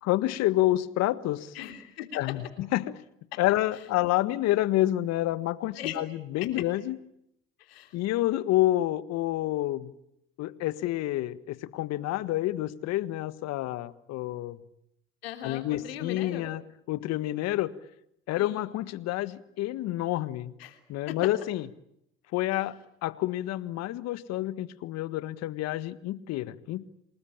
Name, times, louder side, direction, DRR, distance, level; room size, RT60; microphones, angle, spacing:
voice 1, 0.0-1.5 2.1-3.0 3.4-7.0 7.9-9.9 10.4-14.6 15.4-16.6 16.9-17.7 18.3-20.5 20.9-21.7 22.3-26.9, left 15 dB, 60° left, 15 dB, 1.5 m, -28 dB
voice 2, 1.5-2.2 5.7-6.0 6.4-6.6 7.6-8.0 15.2-16.5 18.4-18.7 20.6-20.8 21.1-21.2, left 11 dB, 85° left, 7 dB, 3.3 m, -38 dB
28.0 x 20.0 x 8.8 m, 0.77 s
hypercardioid pair, 65°, 29 cm